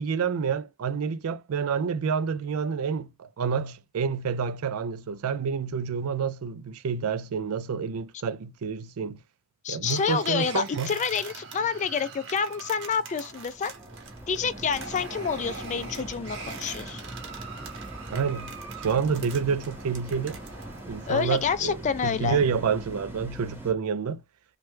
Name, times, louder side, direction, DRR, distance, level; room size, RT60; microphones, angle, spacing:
voice 1, 0.0-9.2 9.7-10.9 18.1-18.6 18.8-20.4 20.9-24.2, right 6 dB, 85° right, 0.4 m, -28 dB
voice 2, 9.6-13.7 14.3-17.0 21.1-22.4, left 6 dB, 35° left, 0.3 m, -28 dB
sound 1, 9.8-21.4, right 4 dB, 60° right, 0.9 m, -42 dB
sound 2, 12.5-23.7, right 1 dB, 10° right, 0.8 m, -42 dB
3.1 x 2.2 x 3.1 m
head